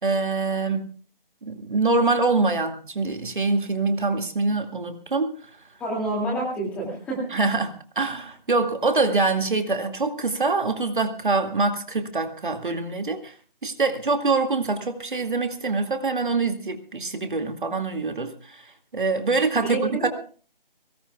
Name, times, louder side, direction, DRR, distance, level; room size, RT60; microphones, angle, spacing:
voice 1, 0.0-0.9 1.4-5.3 7.3-13.3 13.6-18.6 18.9-20.1, right 3 dB, 60° right, 6 dB, 2.2 m, -24 dB
voice 2, 5.8-7.2 19.6-20.1, right 2 dB, 5° left, -2 dB, 2.4 m, -28 dB
23.0 x 18.0 x 2.3 m, 0.40 s
figure-of-eight pair, 165°, 29 cm